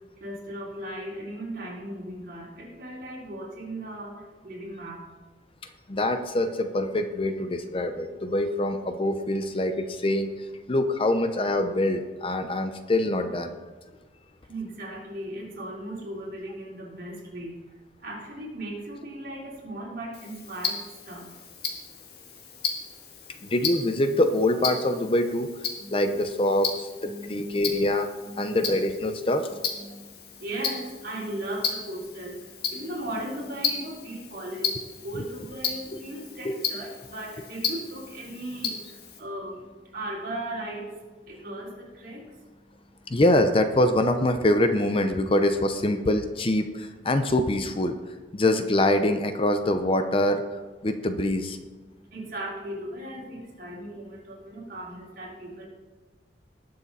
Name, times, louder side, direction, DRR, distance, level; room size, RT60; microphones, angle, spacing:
voice 1, 0.2-5.1 14.5-17.6 18.0-21.4 25.8-26.2 27.0-27.5 28.2-28.6 29.7-43.1 51.9-55.7, right 1 dB, 50° right, -4 dB, 3.7 m, -37 dB
voice 2, 5.9-13.6 23.4-28.1 28.4-29.5 36.4-36.6 43.1-51.6, left 1 dB, 30° left, 8 dB, 0.6 m, -25 dB
Tick-tock, 20.1-39.2, left 6 dB, 55° left, 1.8 m, -35 dB
19.5 x 6.7 x 4.1 m, 1.3 s
head